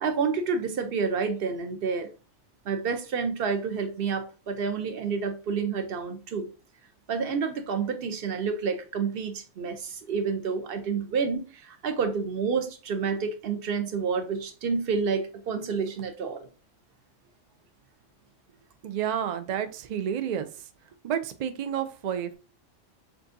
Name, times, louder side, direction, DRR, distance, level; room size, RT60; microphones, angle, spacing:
voice 1, 0.0-2.1 2.7-6.5 7.1-16.5, right 5 dB, 55° right, 0.8 m, -29 dB
voice 2, 18.8-20.5 21.0-22.3, right 9 dB, 80° right, 0.3 m, -30 dB
6.8 x 2.6 x 2.6 m
omnidirectional pair, 1.3 m